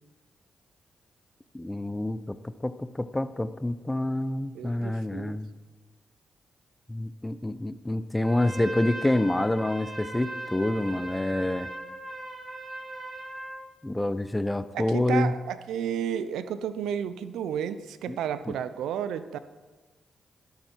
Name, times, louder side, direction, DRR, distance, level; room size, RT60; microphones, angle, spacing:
voice 1, 1.5-2.4 2.6-5.5 6.9-11.7 13.8-15.3 18.1-18.2 18.5-18.6, left 1 dB, 15° left, 13 dB, 0.8 m, -27 dB
voice 2, 4.5-5.4 14.7-19.4, right 9 dB, 85° right, 13 dB, 0.6 m, -32 dB
Trumpet, 8.2-13.6, right 2 dB, 40° right, 3.0 m, -39 dB
11.5 x 11.5 x 4.6 m, 1.3 s
supercardioid pair, 50°, 0 cm